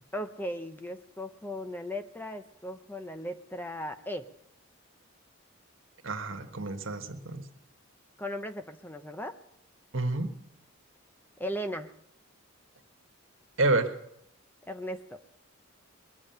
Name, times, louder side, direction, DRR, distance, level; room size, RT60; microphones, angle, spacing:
voice 1, 0.1-4.3 8.2-9.3 11.4-11.9 14.7-15.2, equal, 10° left, 8 dB, 0.6 m, -37 dB
voice 2, 6.0-7.4 9.9-10.3 13.6-13.9, right 2 dB, 65° right, 7 dB, 1.5 m, -28 dB
21.0 x 7.5 x 9.0 m, 0.76 s
head